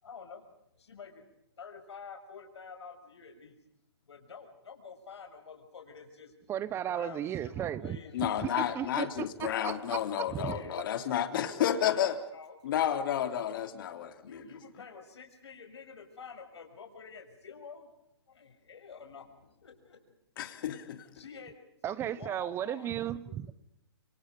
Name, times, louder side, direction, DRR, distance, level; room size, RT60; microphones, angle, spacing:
voice 1, 0.0-0.5 0.8-1.2 1.6-3.6 4.0-6.3 6.9-9.0 10.3-12.5 12.9-13.0 14.2-17.9 18.3-20.1 21.1-21.5 21.8-22.9 23.2-23.4, left 5 dB, 80° left, 3 dB, 6.4 m, -48 dB
voice 2, 6.5-8.0 8.4-8.5 8.7-10.0 10.3-10.6 21.8-23.5, right 11 dB, 15° right, 18 dB, 0.9 m, -35 dB
voice 3, 8.1-12.2 12.6-14.4 20.4-21.1, left 10 dB, 50° left, 7 dB, 3.2 m, -31 dB
28.5 x 25.0 x 5.3 m, 0.80 s
hypercardioid pair, 145°, 14 cm